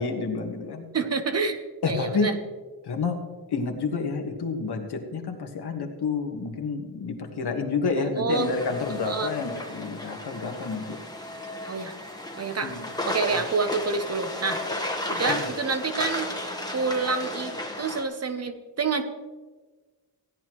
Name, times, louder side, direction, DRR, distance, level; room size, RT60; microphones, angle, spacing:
voice 1, 0.0-0.8 1.8-2.3 2.8-3.2 3.5-11.0 12.6-12.9 15.3-15.4, left 4 dB, 80° left, 4 dB, 1.6 m, -29 dB
voice 2, 0.9-1.6 1.9-2.4 8.0-8.5 9.0-9.3 11.7-11.9 12.4-12.7 13.1-19.0, right 4 dB, 40° right, 8 dB, 0.9 m, -28 dB
sound 1, 8.3-18.0, left 1 dB, 10° left, 1.1 m, -34 dB
16.5 x 10.5 x 3.1 m, 1.3 s
wide cardioid pair, 145°, 39 cm